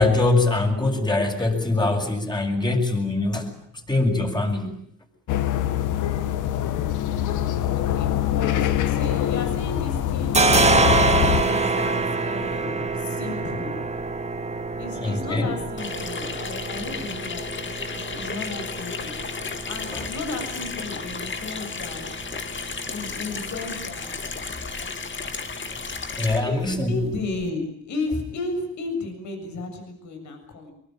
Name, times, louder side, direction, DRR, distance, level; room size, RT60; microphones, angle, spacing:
voice 1, 0.0-3.5 3.9-4.8 14.9-15.5 19.9-20.1 26.1-27.0, left 2 dB, 15° left, 4 dB, 7.0 m, -23 dB
sound 1, 5.3-11.4, left 11 dB, 85° left, 1.8 m, -24 dB
voice 2, 6.4-7.2 7.9-8.5 8.8-10.6 11.4-13.7 14.8-19.1 19.7-22.0 22.9-24.1 24.7-25.0 26.4-26.6 26.9-30.7, left 3 dB, 70° left, 5 dB, 7.2 m, -34 dB
sound 2, 8.8-9.7 9.9-27.5, right 3 dB, 20° right, 2.3 m, -28 dB
Water tap faucet / Sink (filling or washing), 15.8-26.4, left 5 dB, 40° left, 2.3 m, -33 dB
23.5 x 23.5 x 9.1 m, 0.70 s
cardioid pair, 90°, 30 cm